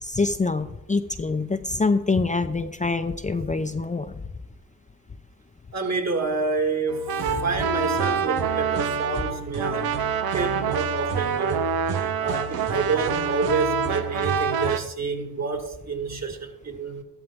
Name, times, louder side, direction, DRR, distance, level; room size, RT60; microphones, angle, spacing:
voice 1, 0.0-4.1, left 3 dB, 20° left, 0.6 m, -25 dB
voice 2, 5.7-7.1 7.4-10.0 10.3-11.7 12.2-17.0, right 4 dB, 45° right, 2.2 m, -28 dB
sound 1, 6.9-14.8, right 6 dB, 80° right, 0.8 m, -26 dB
13.5 x 11.0 x 3.6 m
cardioid pair, 60°, 36 cm